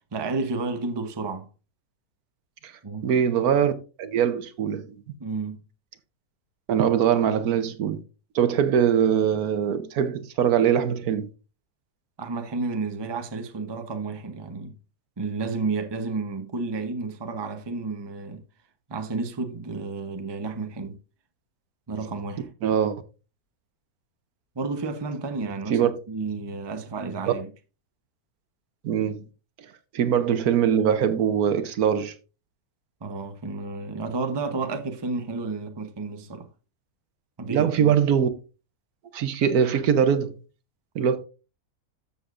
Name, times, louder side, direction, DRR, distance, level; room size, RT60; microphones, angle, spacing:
voice 1, 0.1-1.5 2.8-3.1 5.2-5.6 12.2-14.8 15.2-18.4 18.9-21.0 21.9-22.5 24.6-27.5 33.0-36.5 37.4-37.9, right 3 dB, 25° right, 0.7 m, -31 dB
voice 2, 3.0-3.7 4.0-5.0 6.7-8.0 8.3-11.3 22.6-23.0 25.7-25.9 27.3-27.4 28.8-29.2 29.9-32.1 37.5-38.3 39.1-40.3 40.9-41.2, right 8 dB, 70° right, 1.3 m, -22 dB
13.0 x 6.8 x 2.5 m
omnidirectional pair, 1.7 m